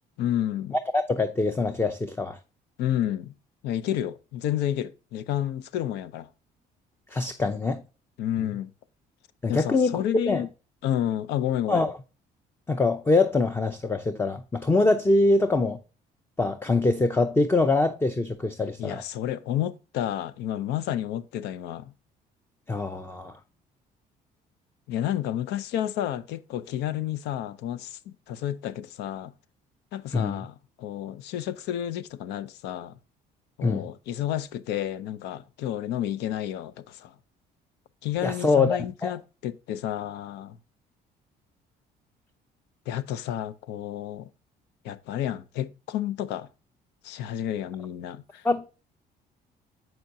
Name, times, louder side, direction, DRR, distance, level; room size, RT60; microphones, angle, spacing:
voice 1, 0.2-0.8 2.8-3.3 3.6-6.3 8.2-8.7 9.5-10.5 10.8-11.8 18.8-21.9 24.9-29.3 29.9-33.0 33.6-37.1 38.0-40.6 42.9-44.3 44.8-46.5 47.0-48.5, left 11 dB, 85° left, 0.6 m, -30 dB
voice 2, 0.7-2.4 7.1-7.8 9.4-10.4 11.7-11.9 12.7-15.8 16.4-19.0 22.7-23.4 30.1-30.4 33.6-33.8 38.2-39.1 48.4-48.7, left 3 dB, 15° left, 0.5 m, -24 dB
7.7 x 5.7 x 2.6 m
cardioid pair, 110°, 17 cm